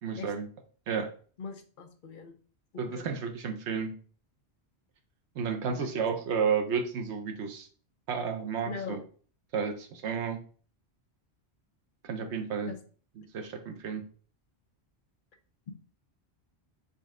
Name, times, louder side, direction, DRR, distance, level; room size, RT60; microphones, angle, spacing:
voice 1, 0.0-0.5 0.9-1.1 2.8-3.9 5.4-7.7 8.1-9.0 9.5-10.4 12.0-12.7 13.3-14.0, right 6 dB, 90° right, 5 dB, 1.0 m, -31 dB
voice 2, 1.4-2.3 2.9-3.0 5.6-5.9 8.7-9.0 12.7-12.8, left 5 dB, 55° left, 6 dB, 0.8 m, -40 dB
4.1 x 3.2 x 3.6 m, 0.42 s
omnidirectional pair, 1.1 m